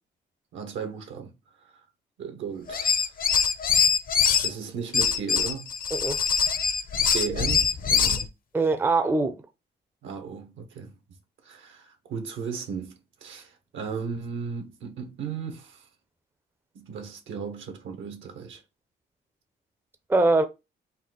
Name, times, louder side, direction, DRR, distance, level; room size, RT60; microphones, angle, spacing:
voice 1, 0.5-1.3 1.6-1.8 2.2-3.1 4.4-5.7 7.1-8.3 10.0-10.9 11.4-15.9 16.7-18.6, right 6 dB, 75° right, 1.2 m, -36 dB
sound 1, 2.7-4.5 4.9-8.3, left 6 dB, 45° left, 0.7 m, -23 dB
voice 2, 5.9-6.2 8.5-9.4 20.1-20.5, right 3 dB, 10° right, 0.5 m, -22 dB
4.2 x 2.4 x 3.9 m
cardioid pair, 90°, 20 cm